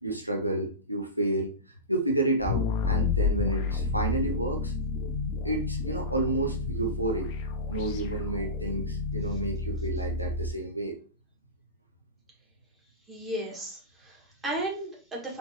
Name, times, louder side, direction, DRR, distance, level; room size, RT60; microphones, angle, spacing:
voice 1, 0.0-4.7 5.4-7.3 7.7-11.0, right 2 dB, 90° right, 1 dB, 0.6 m, -30 dB
sound 1, 2.4-10.6, left 4 dB, 45° left, 0.6 m, -30 dB
voice 2, 13.1-15.4, right 1 dB, 15° right, -3 dB, 2.0 m, -35 dB
4.2 x 3.2 x 3.0 m, 0.36 s
figure-of-eight pair, 90°, 0 cm